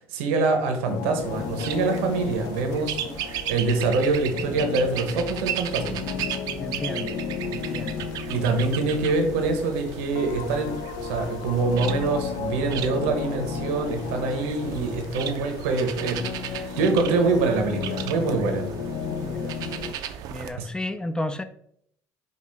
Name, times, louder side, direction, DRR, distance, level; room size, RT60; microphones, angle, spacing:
voice 1, 0.1-6.1 8.3-18.7 20.5-20.7, right 3 dB, 90° right, 0.8 m, -25 dB
sound 1, 0.9-19.9, left 7 dB, 75° left, 0.4 m, -34 dB
sound 2, 1.2-20.5, right 10 dB, 70° right, 0.4 m, -36 dB
voice 2, 6.6-7.2 7.5-8.0 19.2-19.5 20.3-21.4, left 1 dB, 10° left, 0.3 m, -32 dB
5.2 x 2.3 x 3.3 m
supercardioid pair, 80°, 7 cm